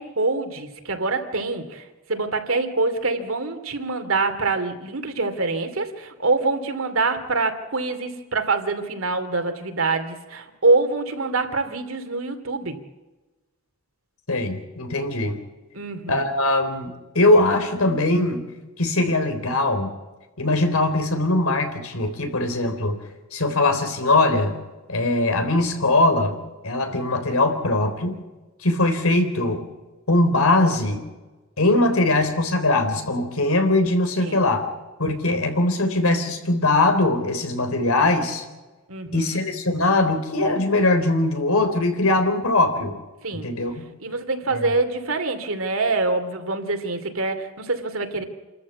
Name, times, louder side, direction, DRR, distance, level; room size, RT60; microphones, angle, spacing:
voice 1, 0.0-12.8 15.7-16.2 34.2-34.4 38.9-39.3 43.2-43.5 44.0-48.2, right 3 dB, 75° right, 7 dB, 2.6 m, -25 dB
voice 2, 14.3-15.4 16.1-18.5 18.8-19.9 20.4-23.0 23.3-24.6 24.9-26.4 26.6-28.2 28.6-29.6 30.1-31.0 31.6-34.6 35.0-38.4 39.1-43.0 43.3-43.8 44.5-44.7, left 2 dB, 90° left, 7 dB, 3.8 m, -21 dB
28.0 x 14.0 x 8.4 m, 1.2 s
head